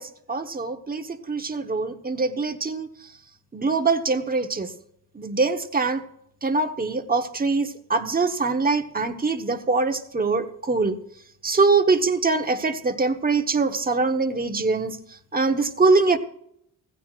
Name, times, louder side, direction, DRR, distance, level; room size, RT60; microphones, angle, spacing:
voice 1, 0.0-2.9 3.5-4.7 5.1-6.0 6.4-11.0 11.4-15.0 15.3-16.2, right 3 dB, 25° right, 6 dB, 1.2 m, -23 dB
16.5 x 16.0 x 2.5 m, 0.73 s
cardioid pair, 100°, 38 cm